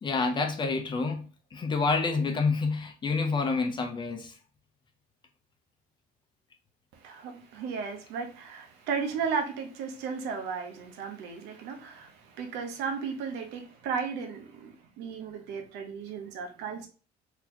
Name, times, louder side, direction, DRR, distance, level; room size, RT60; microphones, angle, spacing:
voice 1, 0.0-4.3, left 4 dB, 25° left, 0.7 m, -28 dB
voice 2, 7.0-16.9, right 6 dB, 85° right, 0.9 m, -35 dB
4.0 x 2.9 x 2.8 m
cardioid pair, 130°, 17 cm